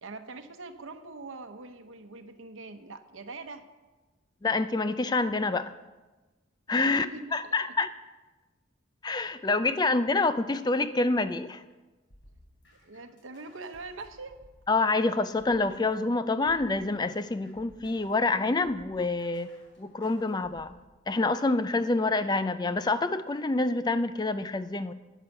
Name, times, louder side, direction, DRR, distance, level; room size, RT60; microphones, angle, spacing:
voice 1, 0.0-3.7 6.8-7.5 12.8-14.4, right 3 dB, 90° right, 0.9 m, -43 dB
voice 2, 4.4-5.7 6.7-7.1 7.3-7.9 9.0-11.6 14.7-19.5 19.8-20.8 21.1-24.9, left 3 dB, 20° left, 0.4 m, -27 dB
sound 1, 12.1-16.0 16.5-20.8, left 1 dB, 70° left, 3.5 m, -58 dB
10.5 x 10.0 x 6.5 m
head